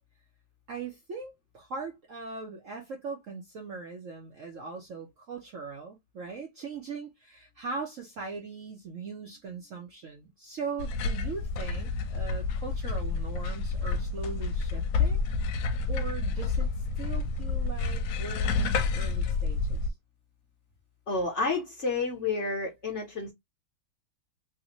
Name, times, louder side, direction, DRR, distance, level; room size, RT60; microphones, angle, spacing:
voice 1, 0.7-15.2 15.9-16.7 17.0-19.9, right 4 dB, 60° right, 0.8 m, -40 dB
sound 1, 10.8-19.9, left 4 dB, 80° left, 1.3 m, -29 dB
voice 2, 21.1-23.3, left 3 dB, 50° left, 0.9 m, -30 dB
3.2 x 2.6 x 2.9 m
omnidirectional pair, 2.1 m